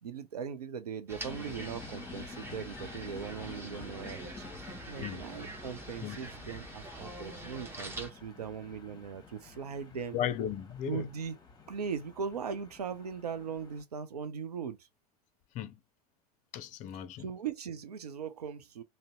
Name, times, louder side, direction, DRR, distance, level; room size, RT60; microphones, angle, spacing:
voice 1, 0.0-4.4 4.9-10.2 10.9-11.4 11.7-14.8 16.9-18.8, right 6 dB, 80° right, 0.5 m, -39 dB
sound 1, 1.1-8.1, right 1 dB, 10° right, 0.7 m, -45 dB
sound 2, 1.2-13.8, left 4 dB, 20° left, 0.8 m, -50 dB
voice 2, 10.1-11.1 15.5-15.7 16.5-17.2, left 9 dB, 40° left, 0.5 m, -35 dB
2.6 x 2.1 x 3.6 m
figure-of-eight pair, 80°, 20 cm